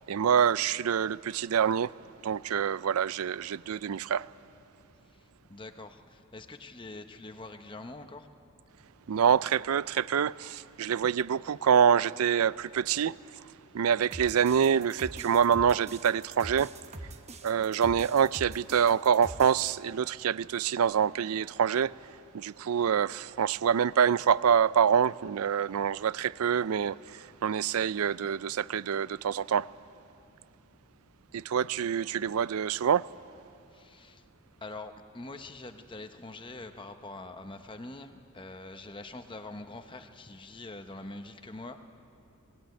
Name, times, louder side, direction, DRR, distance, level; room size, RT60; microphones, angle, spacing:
voice 1, 0.1-1.9 2.2-4.3 9.1-13.1 13.7-16.7 17.4-21.9 22.3-29.7 31.3-33.1, right 7 dB, 85° right, 0.4 m, -26 dB
voice 2, 5.1-8.3 33.7-34.2 34.6-41.8, left 2 dB, 20° left, 0.9 m, -44 dB
sound 1, 14.1-19.7, right 2 dB, 30° right, 1.0 m, -44 dB
20.5 x 17.0 x 9.2 m
head